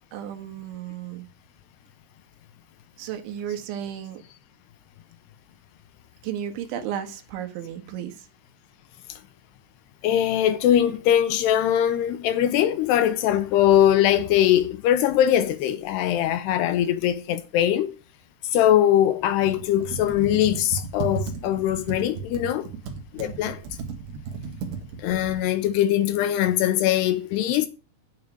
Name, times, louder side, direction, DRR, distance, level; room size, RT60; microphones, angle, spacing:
voice 1, 0.1-1.3 3.0-4.2 6.2-8.3, right 10 dB, 90° right, 4.0 m, -33 dB
voice 2, 10.0-17.9 18.5-22.7 23.1-23.6 25.0-27.7, left 11 dB, 80° left, 2.6 m, -21 dB
Computer keyboard, 19.3-25.4, right 5 dB, 70° right, 3.9 m, -35 dB
9.6 x 8.6 x 7.8 m
omnidirectional pair, 5.2 m